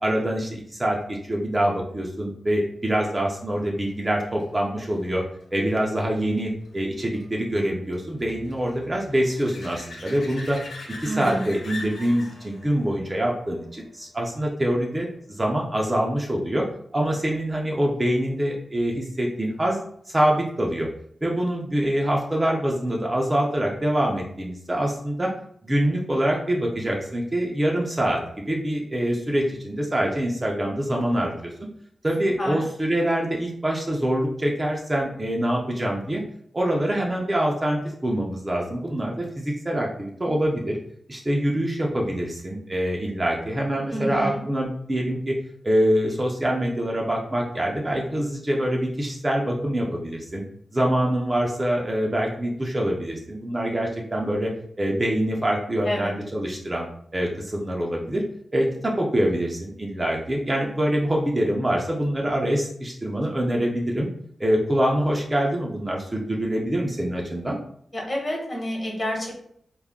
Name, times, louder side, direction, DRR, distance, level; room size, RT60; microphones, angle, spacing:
voice 1, 0.0-5.2 5.5-10.6 11.0-16.7 16.9-19.8 20.1-20.9 21.2-25.3 25.6-31.5 32.0-36.2 36.5-40.8 41.1-45.4 45.6-50.4 50.7-54.5 54.8-56.9 57.1-58.2 58.5-64.1 64.4-67.6, right 1 dB, 25° right, -1 dB, 0.5 m, -25 dB
sound 1, 3.6-14.8 20.5-20.6, left 2 dB, 70° left, 0.5 m, -44 dB
voice 2, 11.0-11.5 32.4-32.6 43.9-44.4 55.8-56.1 67.9-69.4, equal, 30° left, -2 dB, 1.1 m, -29 dB
2.3 x 2.1 x 3.5 m, 0.67 s
cardioid pair, 70°, 0 cm